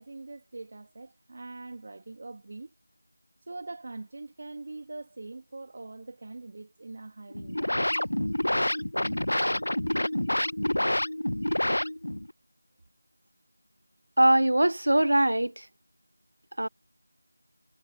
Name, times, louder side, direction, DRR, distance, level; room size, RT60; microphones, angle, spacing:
voice 1, 0.0-2.7 3.4-8.1, right 3 dB, 40° right, 2.2 m, -43 dB
sound 1, 7.3-12.3, left 1 dB, 85° left, 0.7 m, -28 dB
voice 2, 14.2-15.7 16.6-16.7, right 1 dB, 75° right, 0.5 m, -22 dB
figure-of-eight pair, 170°, 0 cm